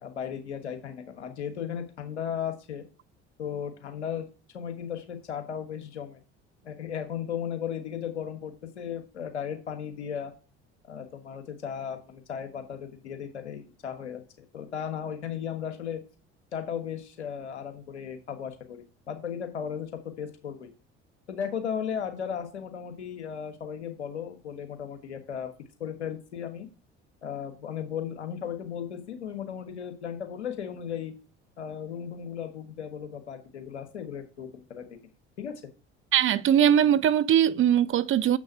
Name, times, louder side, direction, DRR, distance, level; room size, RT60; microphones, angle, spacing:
voice 1, 0.0-2.8 3.4-6.2 6.6-10.3 10.9-16.0 16.5-19.9 20.2-20.7 21.3-25.5 25.8-26.7 27.2-31.1 31.6-34.8 35.4-35.6, left 8 dB, 85° left, 1.4 m, -36 dB
voice 2, 36.1-38.4, right 10 dB, 40° right, 0.6 m, -21 dB
6.9 x 6.1 x 6.4 m
hypercardioid pair, 60°, 33 cm